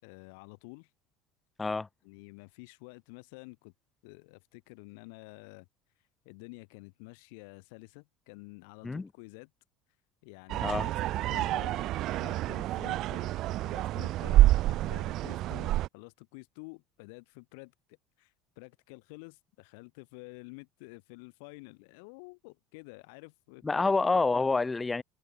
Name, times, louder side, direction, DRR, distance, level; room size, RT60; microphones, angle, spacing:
voice 1, 0.0-0.9 2.0-3.7 4.0-5.7 6.2-9.5 10.2-11.0 11.2-13.3 13.6-17.7 18.2-23.8, left 31 dB, 80° left, 6.3 m, -50 dB
sound 1, 10.5-15.9, right 15 dB, 50° right, 0.3 m, -27 dB
voice 2, 23.6-25.0, left 3 dB, 15° left, 2.7 m, -27 dB
supercardioid pair, 130°, 0 cm